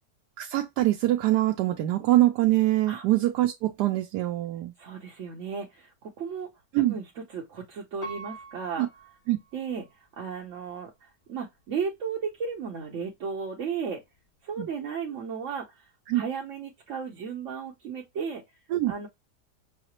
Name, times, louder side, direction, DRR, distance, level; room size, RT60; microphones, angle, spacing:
voice 1, 0.4-4.7 6.7-7.0 8.8-8.9 9.3-9.4 14.6-14.7 16.1-16.2 18.7-18.9, right 15 dB, 80° right, 1.2 m, -24 dB
voice 2, 4.8-6.5 6.9-8.9 9.5-14.0 14.4-18.4 18.9-19.1, right 6 dB, 55° right, 1.0 m, -35 dB
Piano, 8.0-10.0 10.6-10.7, right 2 dB, 60° left, 1.9 m, -44 dB
5.6 x 2.0 x 2.9 m
omnidirectional pair, 1.7 m